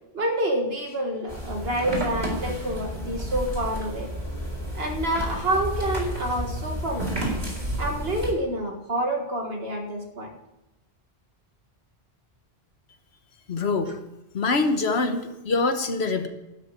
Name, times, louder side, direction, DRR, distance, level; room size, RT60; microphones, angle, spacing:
voice 1, 0.1-4.1 4.7-7.1 7.8-10.3, right 1 dB, 70° right, 3 dB, 2.1 m, -28 dB
sound 1, 1.3-8.3, right 1 dB, 45° right, 4.0 m, -31 dB
voice 2, 13.5-13.9 14.3-16.3, left 3 dB, 85° left, 7 dB, 1.4 m, -24 dB
12.5 x 6.7 x 8.3 m, 1.0 s
omnidirectional pair, 1.1 m